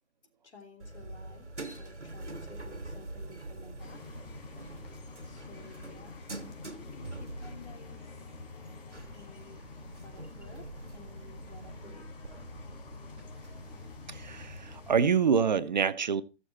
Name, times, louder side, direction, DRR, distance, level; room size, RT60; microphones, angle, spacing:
voice 1, 0.4-1.5 1.8-4.0 5.2-8.4 9.1-9.6 10.0-12.1, left 2 dB, 70° left, 3.2 m, -53 dB
sound 1, 0.8-15.6, right 2 dB, 85° right, 1.4 m, -46 dB
sound 2, 3.8-14.9, left 3 dB, 50° left, 2.9 m, -47 dB
voice 2, 14.1-16.2, right 6 dB, 40° right, 0.6 m, -26 dB
14.0 x 6.6 x 4.2 m
figure-of-eight pair, 130°, 34 cm